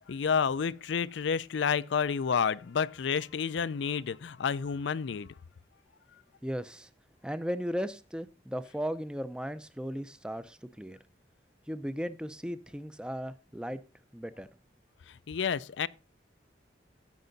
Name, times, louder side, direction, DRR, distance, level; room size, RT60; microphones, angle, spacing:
voice 1, 0.1-5.3 15.1-15.9, left 6 dB, 75° left, 0.4 m, -30 dB
voice 2, 6.4-6.9 7.2-11.0 11.7-13.8 14.1-14.5, equal, 5° right, 0.5 m, -36 dB
16.0 x 5.5 x 3.9 m
head